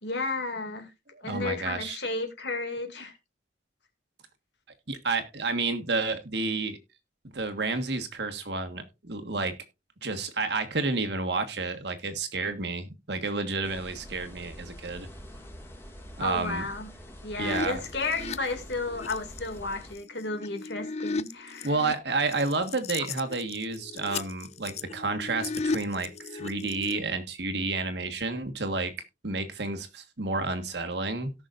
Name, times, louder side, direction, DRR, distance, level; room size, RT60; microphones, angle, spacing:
voice 1, 0.0-0.9 1.2-3.1 16.2-16.9 17.2-21.7, left 3 dB, 75° left, 5 dB, 2.4 m, -33 dB
voice 2, 1.2-2.0 4.9-6.8 7.3-9.6 10.0-15.1 16.2-16.7 17.4-17.8 21.6-28.9 29.2-31.3, right 3 dB, 70° right, 7 dB, 1.5 m, -30 dB
sound 1, 13.6-19.9, equal, 15° left, 2.0 m, -45 dB
sound 2, 17.4-19.4 20.0-21.9 22.3-27.0, left 4 dB, 35° left, 0.4 m, -35 dB
17.5 x 6.2 x 2.5 m, 0.24 s
head